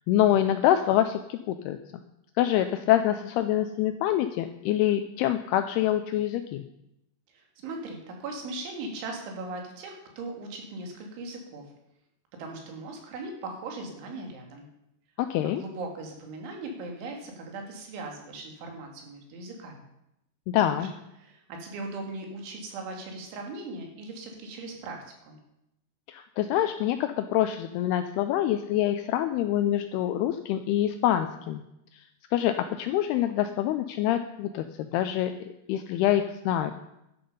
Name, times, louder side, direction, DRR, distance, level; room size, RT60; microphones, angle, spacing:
voice 1, 0.1-1.8 2.4-6.6 15.2-15.6 20.5-20.9 26.1-31.6 32.3-36.7, left 12 dB, 90° left, 8 dB, 2.3 m, -26 dB
voice 2, 7.3-11.6 12.4-14.7 15.4-19.8 20.7-20.9 21.2-25.4, right 2 dB, 90° right, 2 dB, 4.6 m, -39 dB
12.0 x 11.5 x 5.5 m, 0.84 s
omnidirectional pair, 5.3 m